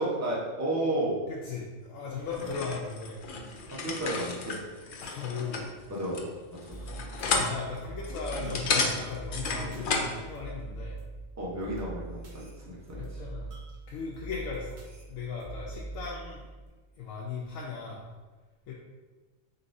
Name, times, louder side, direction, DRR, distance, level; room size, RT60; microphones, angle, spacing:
voice 1, 0.0-1.2 2.4-2.5 3.7-4.6 5.9-6.3 6.6-6.8 11.4-13.2, right 1 dB, 15° right, -5 dB, 0.8 m, -32 dB
voice 2, 1.3-3.3 5.0-5.6 6.6-6.9 7.2-11.0 13.0-13.5 13.9-14.8 15.1-16.4 17.0-18.0 18.7-18.8, left 4 dB, 90° left, -4 dB, 1.0 m, -38 dB
sound 1, 2.3-10.2, left 4 dB, 60° left, 0.5 m, -33 dB
sound 2, 6.7-16.7, right 2 dB, 65° right, 1.1 m, -43 dB
4.0 x 3.8 x 2.6 m, 1.3 s
omnidirectional pair, 1.3 m